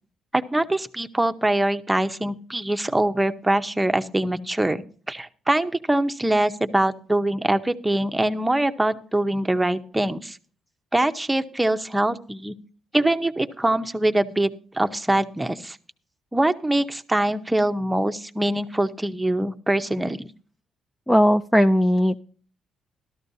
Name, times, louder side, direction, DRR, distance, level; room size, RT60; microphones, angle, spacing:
voice 1, 0.3-10.4 10.9-12.5 12.9-15.8 16.3-20.3, right 1 dB, 10° right, 8 dB, 0.8 m, -23 dB
voice 2, 21.1-22.2, equal, 5° left, 8 dB, 0.4 m, -18 dB
13.5 x 13.0 x 2.8 m, 0.42 s
cardioid pair, 90°, 0 cm